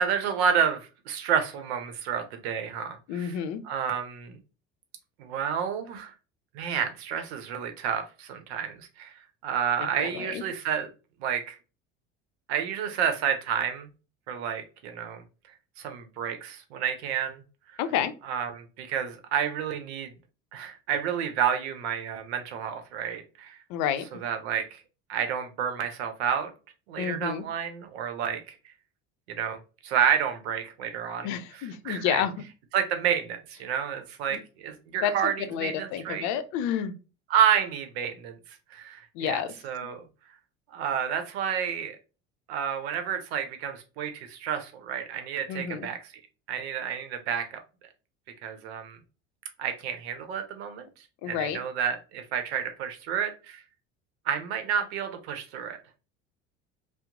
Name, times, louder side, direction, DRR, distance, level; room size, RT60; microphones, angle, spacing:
voice 1, 0.0-3.3 3.7-4.4 5.2-6.1 6.5-9.1 9.4-10.9 11.2-11.6 12.5-13.9 14.3-15.2 15.8-17.4 18.2-20.1 20.5-23.6 24.2-24.8 25.1-26.5 26.9-28.6 29.3-31.3 31.8-32.2 32.7-36.3 37.3-38.4 38.7-40.0 40.7-42.0 42.5-46.0 46.5-47.6 48.4-49.0 49.6-50.9 51.3-53.6 54.3-55.8, right 8 dB, 90° right, 7 dB, 0.7 m, -30 dB
voice 2, 3.1-3.6 9.8-10.4 17.8-18.1 23.7-24.1 27.0-27.4 31.2-32.3 34.3-34.4 35.0-37.0 39.1-39.5 45.5-45.9 51.2-51.6, left 9 dB, 65° left, 11 dB, 0.5 m, -30 dB
2.8 x 2.0 x 3.7 m, 0.33 s
supercardioid pair, 90°, 31 cm